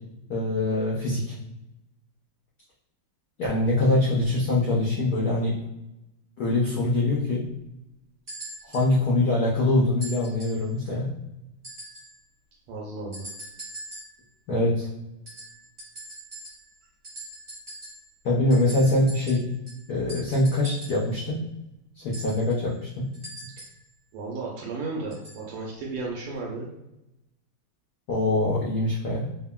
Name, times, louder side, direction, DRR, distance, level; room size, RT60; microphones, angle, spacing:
voice 1, 0.3-1.3 3.4-5.5 6.4-7.4 8.7-11.1 14.5-14.9 18.2-19.4 19.9-21.4 22.0-23.1 28.1-29.3, left 2 dB, 80° left, -5 dB, 0.8 m, -23 dB
sound 1, 8.3-8.9 10.0-10.7 11.6-12.2 13.1-14.2 15.3-16.8 17.0-18.1 18.5-21.1 22.1-23.9 25.1-25.4 26.4-26.5, right 1 dB, 40° right, 1.4 m, -42 dB
voice 2, 12.7-13.3 24.1-26.7, right 3 dB, 85° right, -2 dB, 1.5 m, -34 dB
3.6 x 2.1 x 2.2 m, 0.90 s
omnidirectional pair, 2.4 m